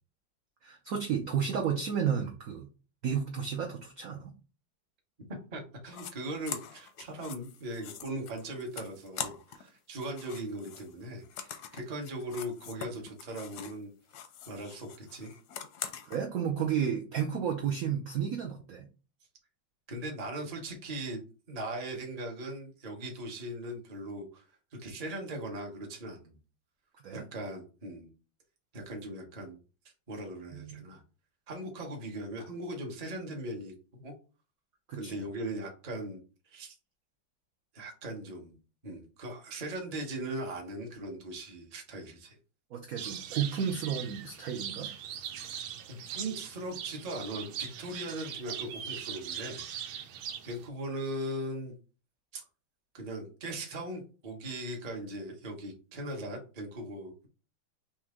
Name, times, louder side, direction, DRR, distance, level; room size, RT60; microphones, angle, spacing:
voice 1, 0.6-2.7 3.0-4.3 16.0-18.8 27.0-27.2 30.5-30.9 34.9-35.2 42.7-44.9, right 8 dB, 65° right, 1 dB, 0.9 m, -32 dB
voice 2, 5.5-13.9 14.5-15.3 19.9-24.4 24.8-26.4 27.1-28.1 28.7-29.6 30.1-31.0 31.5-34.1 34.9-36.2 36.5-36.7 37.7-38.6 38.8-42.4 45.9-49.7 50.4-51.7 52.3-52.4 52.9-57.3, right 1 dB, 30° right, 0 dB, 0.7 m, -39 dB
sound 1, 5.9-6.1 6.4-9.7 9.9-13.8 14.1-16.2, left 8 dB, 70° left, 1.0 m, -43 dB
sound 2, 43.0-50.7, right 9 dB, 85° right, 1.4 m, -41 dB
4.3 x 3.1 x 3.7 m, 0.35 s
omnidirectional pair, 2.2 m